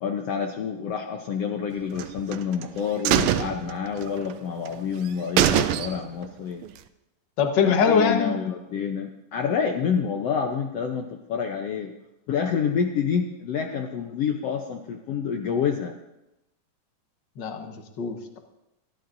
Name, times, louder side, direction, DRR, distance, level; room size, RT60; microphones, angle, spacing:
voice 1, 0.0-6.7 7.6-11.9 12.3-15.9, left 7 dB, 75° left, 3 dB, 1.4 m, -28 dB
sound 1, 2.0-2.7 3.0-4.3 4.7-4.8 5.1-5.2 5.4-6.3 6.6-6.7, right 10 dB, 85° right, 1.5 m, -23 dB
voice 2, 7.4-8.3 17.4-18.4, left 6 dB, 55° left, 4 dB, 1.2 m, -23 dB
23.5 x 14.0 x 2.7 m, 0.91 s
omnidirectional pair, 3.9 m